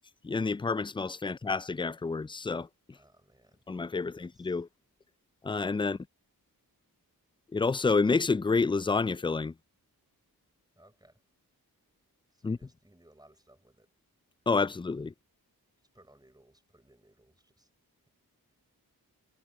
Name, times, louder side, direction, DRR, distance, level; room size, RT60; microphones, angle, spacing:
voice 1, 0.2-2.7 3.7-4.7 5.4-6.0 7.5-9.5 12.4-12.6 14.5-15.1, left 4 dB, 15° left, 0.3 m, -29 dB
voice 2, 2.9-3.7 4.0-4.6 5.8-6.0 10.8-11.2 12.3-13.9 14.5-14.9 15.9-17.7, right 1 dB, 10° right, 6.1 m, -62 dB
wide cardioid pair, 70°, 37 cm